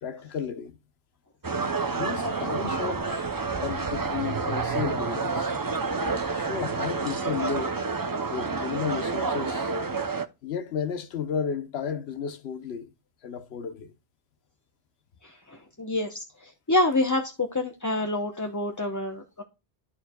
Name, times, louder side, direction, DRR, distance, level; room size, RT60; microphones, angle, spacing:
voice 1, 0.0-0.8 1.9-5.5 6.3-7.8 8.3-9.7 10.4-12.9 13.2-13.9, left 7 dB, 70° left, 1.0 m, -33 dB
sound 1, 1.4-10.3, right 4 dB, 30° right, 0.4 m, -29 dB
voice 2, 15.2-19.4, left 2 dB, 20° left, 0.7 m, -27 dB
13.0 x 4.5 x 2.2 m
omnidirectional pair, 1.1 m